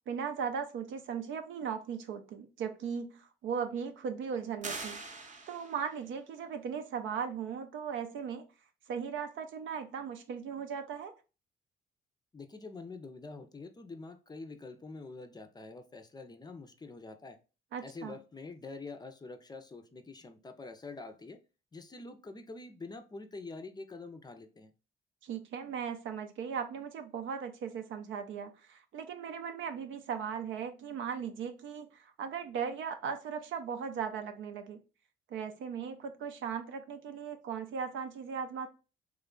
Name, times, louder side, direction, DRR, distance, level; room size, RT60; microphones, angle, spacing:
voice 1, 0.1-5.0 5.5-8.5 8.9-11.2 17.7-18.2 25.2-34.8 35.3-38.7, right 7 dB, 75° right, 7 dB, 0.6 m, -38 dB
sound 1, 4.6-6.0, right 3 dB, 40° right, 0.8 m, -42 dB
voice 2, 12.3-17.4 17.8-21.4 21.7-24.7, left 3 dB, 20° left, 7 dB, 0.5 m, -46 dB
3.1 x 2.3 x 3.7 m, 0.32 s
cardioid pair, 90°, 20 cm